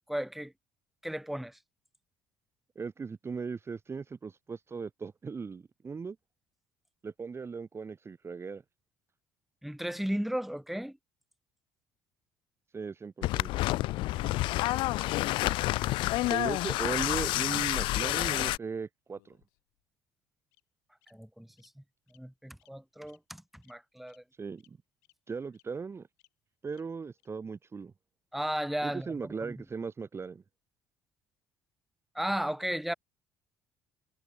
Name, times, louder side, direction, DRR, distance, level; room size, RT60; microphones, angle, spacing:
voice 1, 0.1-0.5 1.0-1.6 9.6-11.0 14.2-14.3 21.1-21.7 22.1-24.2 28.3-29.1 29.4-29.5 32.1-32.9, equal, ahead, 1.3 m, -35 dB
voice 2, 2.7-6.2 7.0-8.6 12.7-13.6 16.3-19.4 24.4-24.8 25.3-26.1 26.6-27.9 28.8-30.4, right 5 dB, 30° right, 1.1 m, -38 dB
sound 1, 13.2-18.6, left 18 dB, 70° left, 0.5 m, -29 dB
Bird vocalization bird call bird song, 19.1-19.8 20.5-20.6 21.0-21.1 21.6-21.7 22.1-22.2 22.6-22.7 23.1-23.2 23.6-23.8 24.1-24.2 24.6-24.7 25.0-25.1 25.5-25.6 26.2-26.3 26.7-26.8 27.2-27.3, left 28 dB, 85° left, 4.4 m, -66 dB
supercardioid pair, 75°, 9 cm